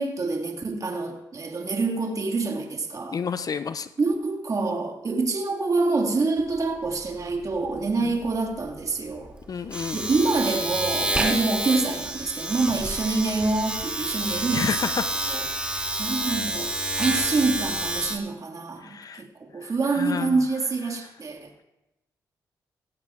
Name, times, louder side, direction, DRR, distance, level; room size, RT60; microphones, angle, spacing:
voice 1, 0.0-3.2 4.0-9.3 9.9-14.7 15.3-21.6, right 3 dB, 45° right, 2 dB, 1.8 m, -26 dB
voice 2, 3.1-3.9 9.5-10.0 14.5-15.0 18.8-19.2 19.6-20.3, left 6 dB, 50° left, 11 dB, 0.5 m, -30 dB
Domestic sounds home sounds, 6.4-6.6 6.9-18.2, right 1 dB, 15° right, 2.4 m, -29 dB
16.5 x 16.0 x 2.4 m, 0.94 s
supercardioid pair, 55°, 8 cm